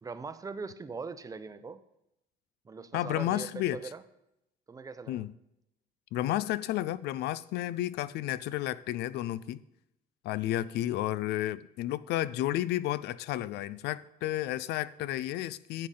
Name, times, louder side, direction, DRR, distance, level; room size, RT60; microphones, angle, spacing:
voice 1, 0.0-1.8 2.6-4.0 4.7-5.2 10.3-10.5, right 4 dB, 20° right, 0.6 m, -41 dB
voice 2, 2.9-3.8 5.1-5.3 6.1-9.6 10.2-15.9, left 14 dB, 80° left, 0.4 m, -32 dB
10.0 x 7.8 x 3.8 m
cardioid pair, 110°, 17 cm